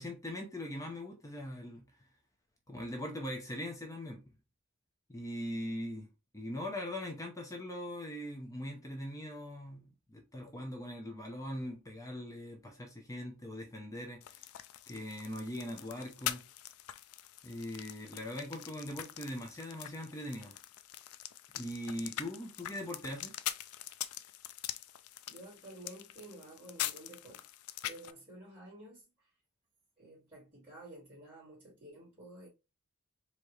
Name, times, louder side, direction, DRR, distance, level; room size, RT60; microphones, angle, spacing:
voice 1, 0.0-1.8 2.7-4.3 5.1-14.5 14.9-16.4 17.4-20.6 21.6-23.3, left 1 dB, 15° left, 0.8 m, -41 dB
sound 1, 14.2-28.1, left 12 dB, 75° left, 0.4 m, -43 dB
voice 2, 25.3-27.4 27.8-29.3 30.0-32.5, right 1 dB, 25° right, 2.4 m, -52 dB
4.6 x 2.7 x 3.2 m
head